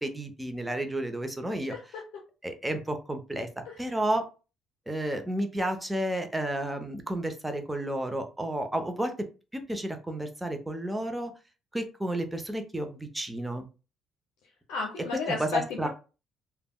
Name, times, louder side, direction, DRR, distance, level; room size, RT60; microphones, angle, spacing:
voice 1, 0.0-1.7 2.4-3.5 3.8-4.3 4.9-9.1 9.5-11.3 11.7-13.7 15.4-15.9, right 1 dB, 10° right, 7 dB, 0.6 m, -31 dB
voice 2, 1.7-2.0 3.6-3.8 14.7-15.9, left 5 dB, 80° left, -1 dB, 0.6 m, -33 dB
3.3 x 2.1 x 2.2 m, 0.33 s
supercardioid pair, 65°, 0 cm